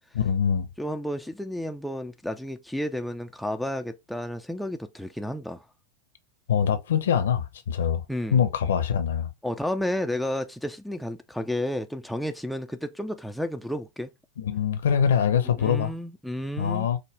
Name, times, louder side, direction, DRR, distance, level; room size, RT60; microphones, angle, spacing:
voice 1, 0.1-0.7 6.5-8.0 8.3-9.3 14.4-15.9 16.6-17.0, left 8 dB, 60° left, 0.7 m, -24 dB
voice 2, 0.8-5.6 8.1-8.4 9.4-14.1 15.6-16.9, left 1 dB, ahead, 0.4 m, -31 dB
5.1 x 2.1 x 3.1 m
figure-of-eight pair, 90°, 0 cm